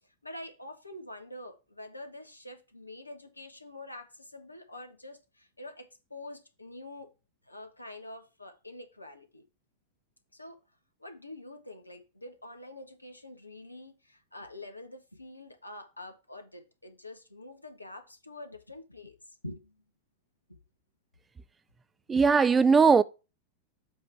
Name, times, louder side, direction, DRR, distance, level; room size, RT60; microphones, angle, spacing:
voice 1, 0.2-7.1 7.5-9.4 10.3-10.6 11.0-19.1 19.4-19.8, left 1 dB, 85° left, 1.2 m, -46 dB
voice 2, 22.1-23.0, right 5 dB, 15° right, 0.4 m, -19 dB
7.7 x 3.2 x 5.8 m
figure-of-eight pair, 90°, 0 cm